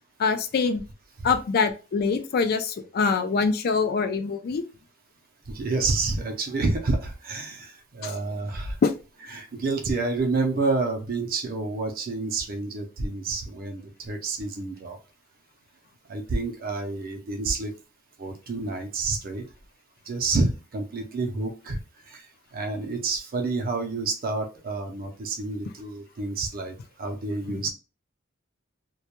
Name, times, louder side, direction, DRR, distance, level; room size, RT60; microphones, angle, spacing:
voice 1, 0.2-0.8 1.2-4.6 8.0-8.1 8.8-8.9 27.5-27.6, left 5 dB, 50° left, 9 dB, 0.4 m, -24 dB
voice 2, 5.5-8.8 9.3-15.0 16.1-17.7 18.2-19.4 20.1-21.8 22.1-22.2 22.5-27.7, right 3 dB, 45° right, 4 dB, 0.5 m, -29 dB
2.2 x 2.1 x 2.8 m, 0.32 s
head